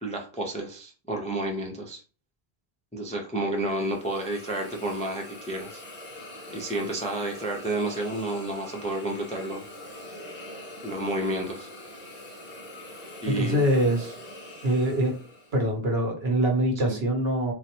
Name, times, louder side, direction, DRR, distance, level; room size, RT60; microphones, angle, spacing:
voice 1, 0.0-2.0 2.9-5.8 6.5-9.6 10.8-11.7 13.2-13.6 16.9-17.0, right 1 dB, 10° left, 1 dB, 0.3 m, -30 dB
Hiss, 3.5-15.7, left 1 dB, 45° left, 1.0 m, -43 dB
voice 2, 13.3-14.2 14.6-15.2 15.5-17.5, right 1 dB, 80° right, 2 dB, 1.1 m, -24 dB
3.8 x 2.1 x 2.8 m, 0.38 s
omnidirectional pair, 1.0 m